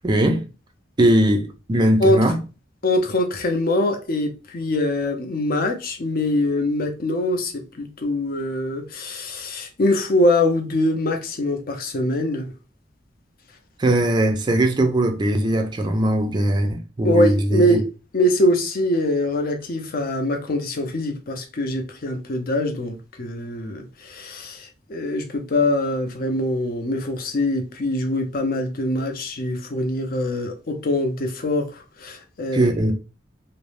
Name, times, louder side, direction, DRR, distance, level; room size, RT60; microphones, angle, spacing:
voice 1, 0.0-0.4 1.0-2.4 13.8-17.8 32.5-32.9, right 1 dB, 25° right, 0.4 m, -20 dB
voice 2, 2.8-12.5 17.0-17.8 18.1-32.7, left 1 dB, 50° left, 0.6 m, -23 dB
2.6 x 2.0 x 3.1 m
head